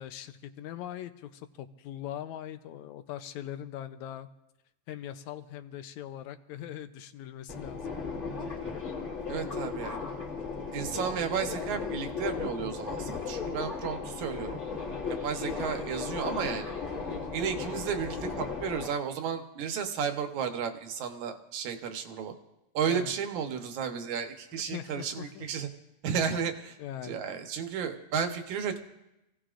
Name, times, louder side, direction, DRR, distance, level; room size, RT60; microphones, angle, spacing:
voice 1, 0.0-4.3 4.9-7.9 22.9-23.1 24.7-25.5 26.1-26.4 26.8-27.2, left 11 dB, 75° left, 10 dB, 2.0 m, -41 dB
Subway metro underground, 7.5-18.9, left 5 dB, 25° left, 2.8 m, -36 dB
voice 2, 9.3-10.0 10.7-14.6 15.2-16.7 17.3-22.3 22.7-25.7 26.0-26.8 27.0-28.8, right 7 dB, 75° right, 6 dB, 2.5 m, -33 dB
27.0 x 16.5 x 2.5 m, 0.93 s
omnidirectional pair, 3.5 m